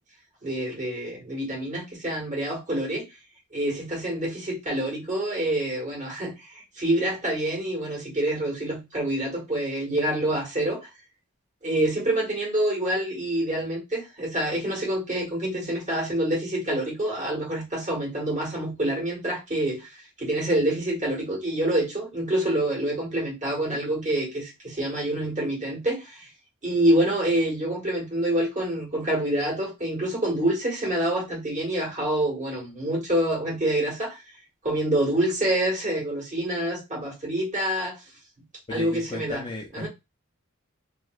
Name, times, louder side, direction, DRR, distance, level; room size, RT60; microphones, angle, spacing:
voice 1, 0.4-3.0 3.5-10.8 11.6-26.3 26.6-34.2 34.6-38.0 38.7-39.4 39.7-39.9, right 1 dB, 35° right, 1.6 m, -27 dB
voice 2, 38.7-39.9, left 2 dB, 20° left, 0.5 m, -35 dB
3.0 x 2.9 x 2.3 m
head